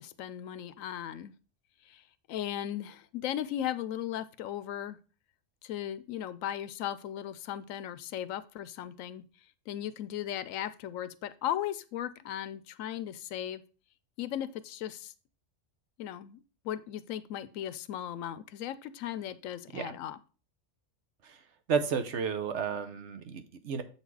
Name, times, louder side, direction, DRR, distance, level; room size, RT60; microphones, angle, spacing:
voice 1, 0.0-1.3 1.9-2.0 2.3-5.0 5.6-9.2 9.7-13.6 14.2-15.1 16.0-20.2, left 11 dB, 90° left, 15 dB, 1.0 m, -37 dB
voice 2, 21.7-23.8, right 6 dB, 65° right, 9 dB, 1.1 m, -32 dB
7.4 x 4.1 x 4.7 m, 0.36 s
omnidirectional pair, 1.3 m